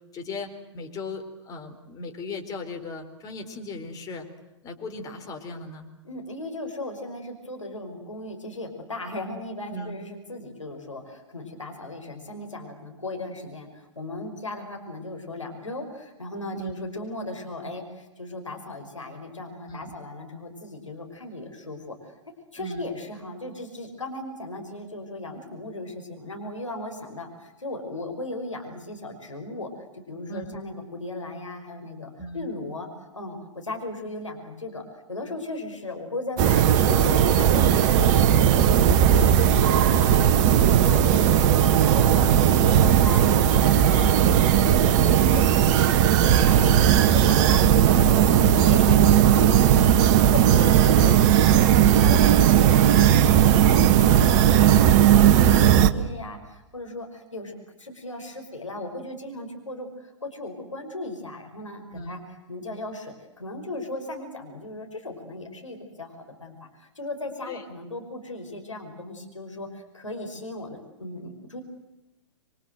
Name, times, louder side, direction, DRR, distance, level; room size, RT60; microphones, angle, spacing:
voice 1, 0.1-4.3 4.6-5.9 9.7-9.9 16.6-16.7 19.7-19.9 22.6-22.9 30.3-30.6 32.2-32.5 40.6-40.9 43.9-44.3 47.3-47.5 50.6-51.1 55.3-55.4 61.9-62.1 67.4-67.6, left 2 dB, 20° left, 5 dB, 4.3 m, -37 dB
voice 2, 6.0-22.2 22.5-62.2 62.5-71.6, left 2 dB, 85° left, 3 dB, 5.4 m, -37 dB
sound 1, 36.4-55.9, right 9 dB, 35° right, 1.5 m, -17 dB
28.0 x 23.5 x 7.8 m, 0.98 s
figure-of-eight pair, 110°, 16 cm